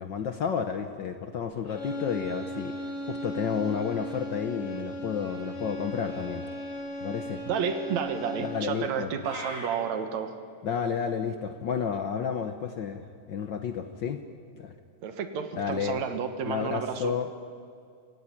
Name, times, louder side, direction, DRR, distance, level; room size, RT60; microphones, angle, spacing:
voice 1, 0.0-2.7 3.0-6.4 7.0-7.4 8.4-9.1 10.6-14.2 14.6-14.8 15.6-16.0 16.4-17.3, left 7 dB, 75° left, 8 dB, 1.0 m, -31 dB
sound 1, 1.7-8.8, equal, 50° left, 5.1 m, -37 dB
voice 2, 7.5-10.3 15.0-17.2, right 7 dB, 70° right, 9 dB, 2.6 m, -31 dB
sound 2, 9.2-9.7, right 1 dB, 35° right, 6.4 m, -38 dB
25.5 x 15.5 x 9.8 m, 2.3 s
omnidirectional pair, 3.3 m